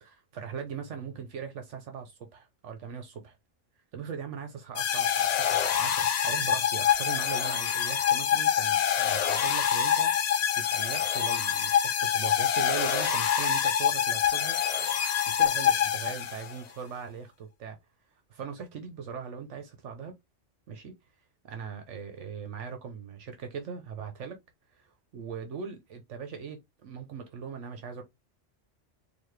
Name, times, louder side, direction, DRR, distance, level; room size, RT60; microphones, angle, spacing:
voice 1, 0.0-3.4 3.9-14.6 15.3-17.8 18.1-20.1 20.7-20.9 21.4-24.4 24.7-28.0, right 6 dB, 70° right, 1.0 m, -40 dB
sound 1, 4.8-16.6, left 9 dB, 85° left, 0.3 m, -26 dB
4.1 x 2.7 x 3.1 m
omnidirectional pair, 1.3 m